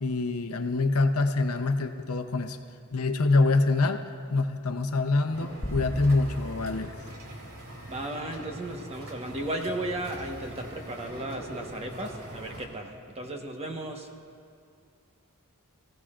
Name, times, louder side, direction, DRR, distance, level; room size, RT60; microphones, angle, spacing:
voice 1, 0.0-2.6 2.9-6.9, left 3 dB, 75° left, 7 dB, 0.8 m, -25 dB
sound 1, 5.3-12.6, right 1 dB, 80° right, 2.5 m, -43 dB
sound 2, 5.6-8.2, equal, 40° left, 4.0 m, -38 dB
voice 2, 7.9-14.1, right 1 dB, 30° right, 2 dB, 1.2 m, -35 dB
23.0 x 16.0 x 2.5 m, 2.4 s
head